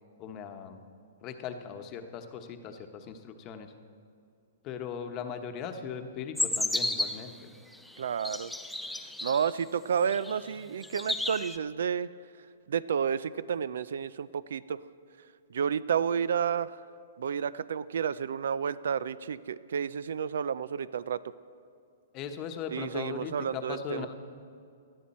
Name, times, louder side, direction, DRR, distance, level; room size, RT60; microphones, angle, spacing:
voice 1, 0.2-0.8 1.2-3.7 4.6-7.5 22.1-24.1, left 7 dB, 25° left, 6 dB, 1.0 m, -39 dB
sound 1, 6.4-7.3 8.0-9.5 10.1-10.5 10.8-11.6, left 2 dB, ahead, 0.4 m, -32 dB
voice 2, 8.0-8.5 9.2-12.1 12.7-14.8 15.5-16.8 17.2-21.2 22.7-24.1, right 7 dB, 75° right, 18 dB, 0.4 m, -31 dB
19.0 x 12.5 x 4.3 m, 2.5 s
hypercardioid pair, 155°, 0 cm